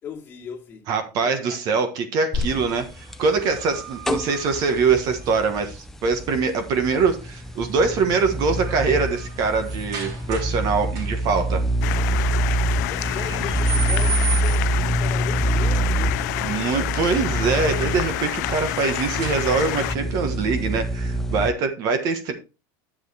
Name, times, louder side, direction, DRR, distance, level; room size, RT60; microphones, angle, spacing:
voice 1, 0.0-0.9 1.2-1.9 12.6-17.1, left 7 dB, 25° left, 2.6 m, -39 dB
voice 2, 0.9-11.6 16.4-22.3, right 4 dB, 40° right, 1.4 m, -23 dB
sound 1, 2.3-21.5, right 1 dB, 5° left, 0.6 m, -26 dB
sound 2, 2.8-5.7 7.4-7.8 8.2-10.6 10.9-11.4 13.0-14.9 17.2-20.0, right 3 dB, 65° right, 5.4 m, -36 dB
sound 3, 11.8-20.0, left 19 dB, 65° left, 0.4 m, -28 dB
10.5 x 7.6 x 3.4 m
supercardioid pair, 165°, 10 cm